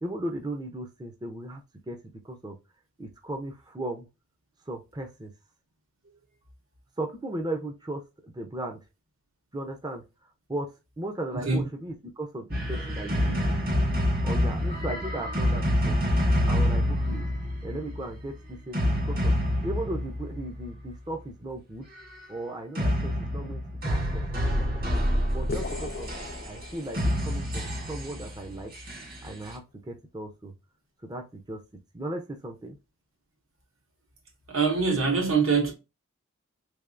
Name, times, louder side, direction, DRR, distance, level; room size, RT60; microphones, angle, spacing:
voice 1, 0.0-2.0 2.2-2.6 3.0-4.1 4.7-5.3 7.0-8.8 9.5-10.0 10.5-10.7 11.0-13.5 14.2-16.0 16.4-17.3 17.6-19.4 19.6-21.8 22.3-24.8 25.3-26.1 26.5-28.7 29.2-30.5 31.0-31.6 31.9-32.8, right 1 dB, 20° right, 0.5 m, -36 dB
sound 1, 12.5-20.9 22.7-29.5, equal, 45° right, 1.4 m, -27 dB
sound 2, 25.5-27.4, left 4 dB, 50° left, 0.3 m, -38 dB
voice 2, 34.5-35.7, right 5 dB, 75° right, 1.8 m, -23 dB
3.6 x 3.4 x 2.4 m
head